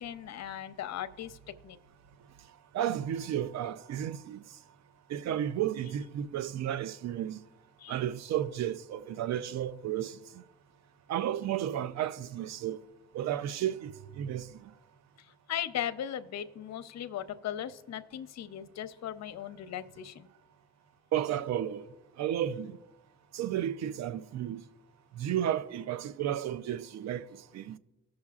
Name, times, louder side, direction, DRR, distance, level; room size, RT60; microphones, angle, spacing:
voice 1, 0.0-1.4 1.6-1.8 7.8-8.0 15.2-20.3, left 10 dB, 60° left, 0.7 m, -38 dB
voice 2, 2.7-4.4 5.1-7.4 7.9-10.2 11.1-12.8 13.1-14.5 21.1-21.9 22.2-22.8 23.3-24.6 25.2-27.3 27.5-27.8, right 10 dB, 65° right, 0.5 m, -33 dB
17.0 x 6.3 x 2.4 m
cardioid pair, 85°, 30 cm